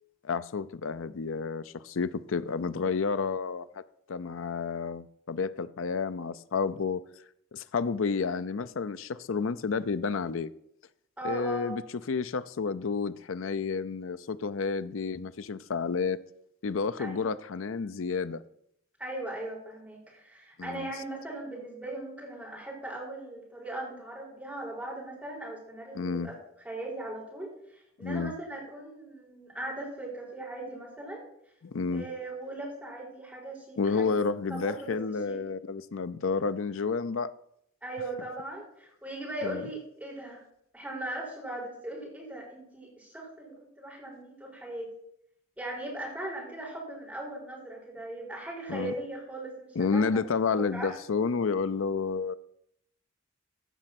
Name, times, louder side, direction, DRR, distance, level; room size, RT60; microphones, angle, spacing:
voice 1, 0.2-3.7 4.1-7.0 7.5-10.5 11.2-11.8 12.1-16.2 16.6-18.4 20.6-20.9 25.9-26.3 28.0-28.3 31.6-32.0 33.8-37.3 39.4-39.6 48.7-48.9 49.8-52.4, left 5 dB, 75° left, 14 dB, 0.5 m, -30 dB
voice 2, 11.2-11.7 17.0-17.3 19.0-26.3 26.6-27.5 28.0-31.2 31.9-34.1 34.5-35.0 35.2-35.4 37.8-40.4 40.7-44.9 45.6-50.9, right 1 dB, 5° right, -3 dB, 4.2 m, -39 dB
15.5 x 5.3 x 5.9 m, 0.73 s
head